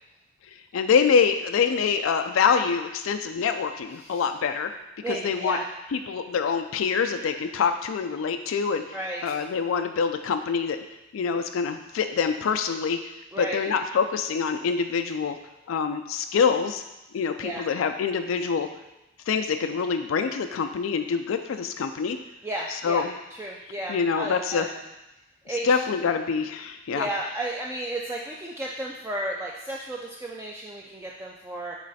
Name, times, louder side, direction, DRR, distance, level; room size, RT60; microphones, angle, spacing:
voice 1, 0.7-4.7 5.1-5.6 5.9-9.0 9.2-10.8 11.1-13.0 13.4-15.4 15.7-16.8 17.1-18.7 19.3-22.2 22.7-23.1 23.9-24.7 25.5-27.1, left 6 dB, 85° left, 7 dB, 0.4 m, -25 dB
voice 2, 5.0-5.6 8.9-9.2 13.3-13.6 17.4-17.6 22.4-23.0 23.3-24.7 25.5-25.7 26.9-31.8, right 1 dB, 15° right, -2 dB, 0.4 m, -33 dB
7.3 x 3.2 x 4.0 m, 0.96 s
head